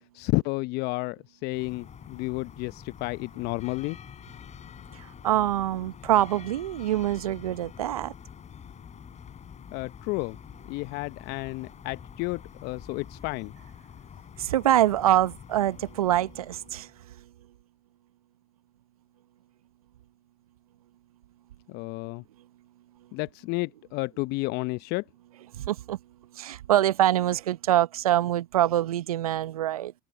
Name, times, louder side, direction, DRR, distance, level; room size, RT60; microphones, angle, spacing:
voice 1, 0.1-4.0 9.7-10.4 10.7-13.5 21.7-22.2 23.1-25.0, left 24 dB, 60° left, 0.7 m, -31 dB
sound 1, 1.5-17.0, left 8 dB, 40° left, 4.2 m, -47 dB
voice 2, 5.2-8.1 14.4-16.9 25.7-26.0 26.4-29.9, right 12 dB, 85° right, 0.9 m, -24 dB
hypercardioid pair, 65°, 18 cm